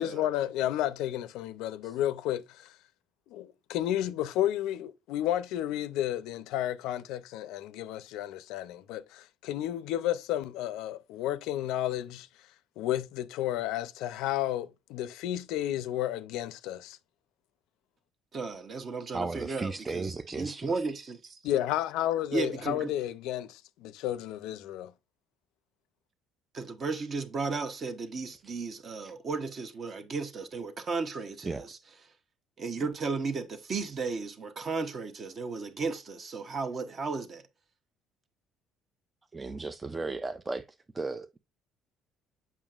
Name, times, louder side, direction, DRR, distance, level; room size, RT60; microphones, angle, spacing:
voice 1, 0.0-2.7 3.3-12.3 12.8-17.0 21.4-24.9, left 12 dB, 80° left, 0.5 m, -32 dB
voice 2, 18.3-21.4 22.3-22.9 26.5-31.8 32.6-37.4, right 4 dB, 35° right, 0.8 m, -34 dB
voice 3, 19.1-20.7 28.4-28.5 31.4-31.6 39.3-40.7 40.9-41.4, right 3 dB, 15° right, 0.3 m, -35 dB
7.2 x 5.6 x 2.4 m
cardioid pair, 145°, 0 cm